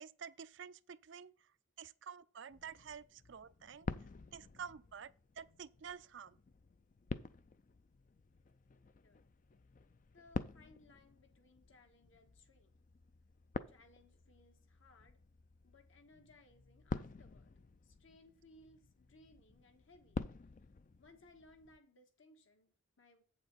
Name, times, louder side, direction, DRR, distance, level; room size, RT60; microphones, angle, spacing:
voice 1, 0.0-1.3 1.8-3.9 4.3-5.1 5.4-6.4, right 7 dB, 60° right, 0.4 m, -50 dB
sound 1, 2.5-21.8, left 3 dB, 40° left, 0.4 m, -49 dB
voice 2, 10.1-12.7 13.7-15.2 15.6-17.5 17.8-20.2 21.0-23.2, left 2 dB, 70° left, 1.7 m, -64 dB
8.5 x 7.2 x 4.1 m
head